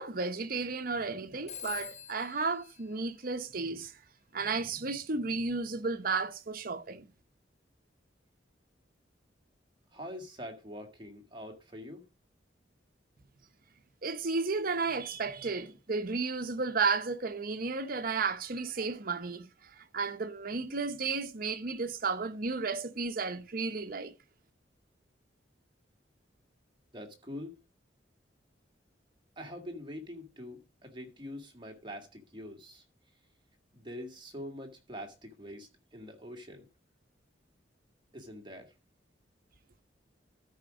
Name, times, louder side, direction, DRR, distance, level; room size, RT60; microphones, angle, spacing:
voice 1, 0.0-3.9 4.3-7.1 14.0-24.1, right 4 dB, 50° right, 0.9 m, -33 dB
Telephone, 1.5-4.0, left 9 dB, 40° left, 1.2 m, -46 dB
voice 2, 9.9-12.0 26.9-27.6 29.4-32.8 33.7-36.7 38.1-38.7, equal, 25° right, 2.0 m, -44 dB
13.0 x 5.1 x 5.0 m
head